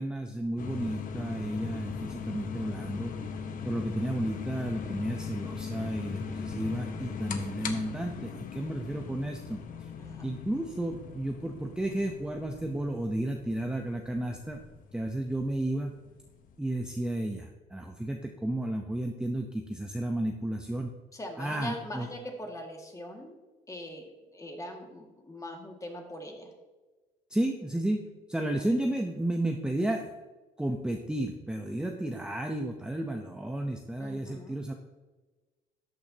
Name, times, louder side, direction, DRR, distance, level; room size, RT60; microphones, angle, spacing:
voice 1, 0.0-3.1 3.6-9.9 10.2-14.6 14.9-16.0 16.6-20.9 21.4-22.1 27.3-28.0 28.3-30.1 30.6-34.7, right 1 dB, 5° right, 3 dB, 0.7 m, -32 dB
sound 1, 0.6-16.5, left 5 dB, 55° left, 1.1 m, -39 dB
voice 2, 10.0-10.3 21.1-23.4 23.7-26.5 28.4-28.7 34.0-34.6, left 1 dB, 20° left, 2 dB, 2.0 m, -42 dB
12.5 x 9.0 x 2.9 m, 1.2 s
cardioid pair, 110°, 17 cm